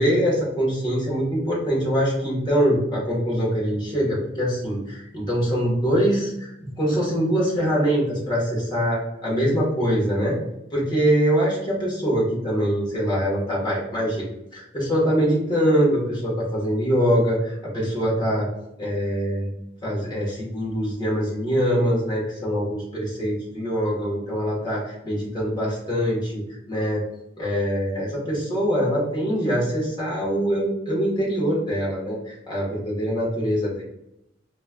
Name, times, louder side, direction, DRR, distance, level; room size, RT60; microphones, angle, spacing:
voice 1, 0.0-10.4 10.7-14.3 14.5-18.5 18.8-19.5 19.8-27.0 27.4-33.8, equal, 25° left, -5 dB, 1.2 m, -23 dB
4.2 x 2.3 x 2.2 m, 0.84 s
head